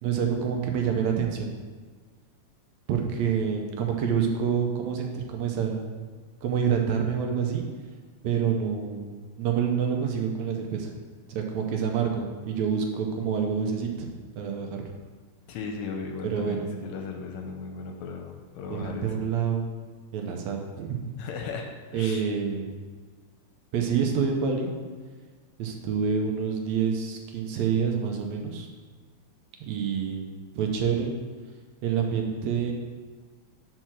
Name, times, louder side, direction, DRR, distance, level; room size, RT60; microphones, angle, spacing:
voice 1, 0.0-1.5 2.9-6.1 6.4-7.7 8.2-10.9 11.3-14.1 14.4-14.8 16.2-16.6 18.7-19.7 20.1-21.0 21.9-22.7 23.7-24.7 25.6-28.7 29.6-30.3 30.6-31.1 31.8-32.7, right 7 dB, 75° right, 2 dB, 1.9 m, -27 dB
voice 2, 15.5-19.3 21.2-22.3, left 5 dB, 80° left, 4 dB, 1.8 m, -36 dB
6.1 x 4.5 x 6.1 m, 1.5 s
omnidirectional pair, 3.4 m